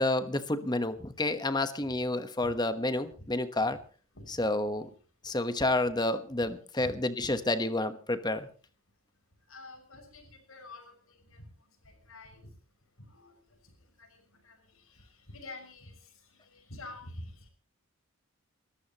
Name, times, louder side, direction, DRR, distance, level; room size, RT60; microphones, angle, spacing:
voice 1, 0.0-3.8 4.3-4.9 5.2-8.5, left 2 dB, 20° left, 10 dB, 1.1 m, -29 dB
voice 2, 9.5-11.4 11.9-12.5 13.0-13.3 14.0-14.6 14.9-15.9 16.5-17.5, left 2 dB, 75° left, 4 dB, 6.2 m, -47 dB
30.0 x 14.5 x 3.0 m, 0.39 s
head